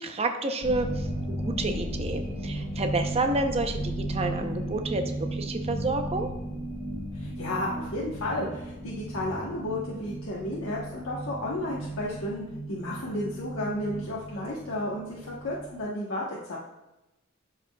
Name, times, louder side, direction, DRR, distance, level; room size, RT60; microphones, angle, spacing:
voice 1, 0.0-5.0 5.3-6.3, right 2 dB, 30° right, 6 dB, 0.6 m, -29 dB
sound 1, 0.6-15.8, right 1 dB, 50° left, 2.2 m, -35 dB
voice 2, 7.1-16.6, left 1 dB, 90° left, -5 dB, 1.1 m, -33 dB
12.0 x 5.0 x 2.3 m, 0.96 s
head